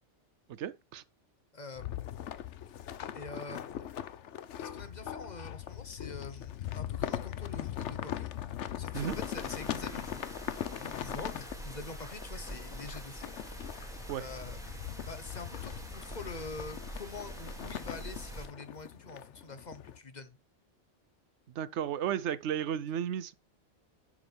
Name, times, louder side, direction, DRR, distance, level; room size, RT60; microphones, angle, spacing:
voice 1, 0.5-1.0 8.9-9.2 14.1-14.3 21.5-23.3, right 9 dB, 80° right, 0.9 m, -34 dB
voice 2, 1.5-1.9 3.1-3.9 4.6-8.4 8.8-10.2 10.8-13.3 14.2-14.6 15.1-20.4, left 3 dB, 40° left, 1.0 m, -45 dB
sound 1, 1.8-20.0, left 11 dB, 85° left, 1.0 m, -40 dB
sound 2, 8.9-18.5, right 1 dB, 5° right, 2.2 m, -45 dB
11.0 x 6.1 x 3.3 m
omnidirectional pair, 1.2 m